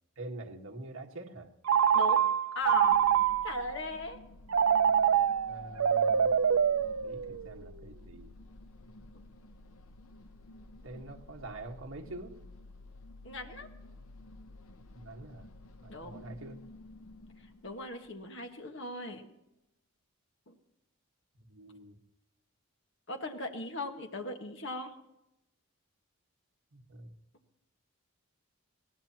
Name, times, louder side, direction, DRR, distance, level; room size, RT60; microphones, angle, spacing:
voice 1, 0.2-1.5 5.5-6.4 6.7-8.3 10.8-12.4 14.9-15.5 15.8-16.6 21.5-22.0 26.7-27.1, right 2 dB, 75° right, 2 dB, 1.7 m, -45 dB
Telephone, 1.6-3.7 4.5-7.5, right 8 dB, 90° right, 0.5 m, -26 dB
voice 2, 1.9-2.2 2.5-3.0 3.4-4.2 13.2-13.7 15.2-15.3 15.9-16.2 17.6-19.2 20.5-20.6 23.1-24.9, left 2 dB, 55° left, 4 dB, 1.6 m, -38 dB
sound 1, 2.6-18.5, left 2 dB, 80° left, 0.8 m, -52 dB
20.5 x 17.5 x 3.0 m, 0.88 s
head